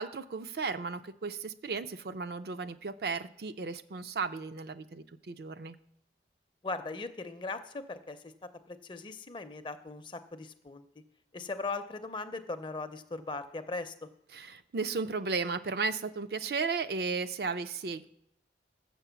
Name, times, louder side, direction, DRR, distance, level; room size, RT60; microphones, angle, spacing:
voice 1, 0.0-5.8 14.3-18.1, right 4 dB, 60° right, 9 dB, 0.4 m, -35 dB
voice 2, 6.6-8.3 8.7-10.8 11.3-13.9, left 3 dB, 25° left, 9 dB, 0.5 m, -39 dB
7.6 x 6.0 x 6.9 m, 0.76 s
head